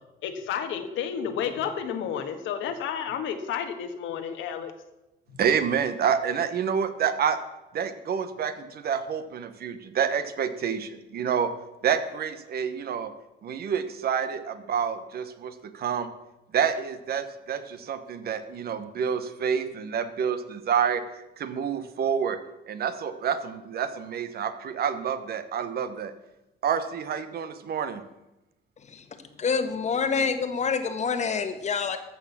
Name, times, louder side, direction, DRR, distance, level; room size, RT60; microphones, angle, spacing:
voice 1, 0.2-4.7, left 8 dB, 90° left, 7 dB, 1.6 m, -31 dB
voice 2, 5.4-7.4 7.7-11.5 11.8-13.1 13.4-16.1 16.5-22.4 22.7-26.1 26.6-28.0, right 7 dB, 55° right, 11 dB, 1.1 m, -28 dB
voice 3, 29.4-32.0, left 5 dB, 35° left, 9 dB, 1.4 m, -26 dB
14.0 x 6.4 x 7.3 m, 0.96 s
cardioid pair, 135°, 19 cm